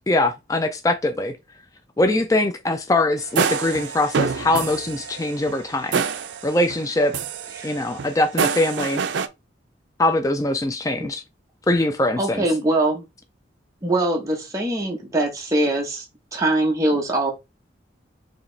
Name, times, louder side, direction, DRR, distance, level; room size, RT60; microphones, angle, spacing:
voice 1, 0.1-1.4 2.0-6.0 6.4-7.2 7.6-9.0 10.0-11.2 11.7-12.4, left 1 dB, 20° left, 0.4 m, -22 dB
sound 1, 3.2-6.9 7.1-9.3, right 6 dB, 75° right, 0.5 m, -26 dB
voice 2, 12.2-13.0 13.8-16.0 16.3-17.3, right 1 dB, 15° right, 0.9 m, -22 dB
4.8 x 2.9 x 3.2 m
head